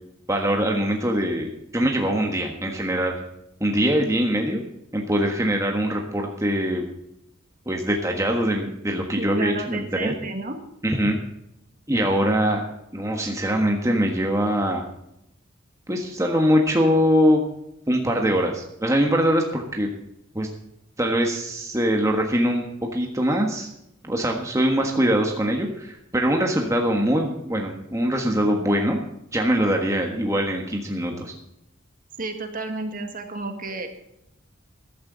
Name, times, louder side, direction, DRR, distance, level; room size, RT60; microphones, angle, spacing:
voice 1, 0.3-3.2 3.6-4.6 4.9-6.8 7.6-10.1 10.8-11.2 11.9-12.7 12.9-14.8 15.9-17.5 17.9-19.9 20.3-20.5 21.0-22.6 22.9-23.7 24.0-29.0 29.3-31.3, equal, 15° right, 1 dB, 1.4 m, -22 dB
voice 2, 9.2-10.6 12.1-12.2 32.2-33.9, right 3 dB, 45° right, 5 dB, 1.9 m, -31 dB
15.0 x 12.0 x 4.0 m, 0.82 s
head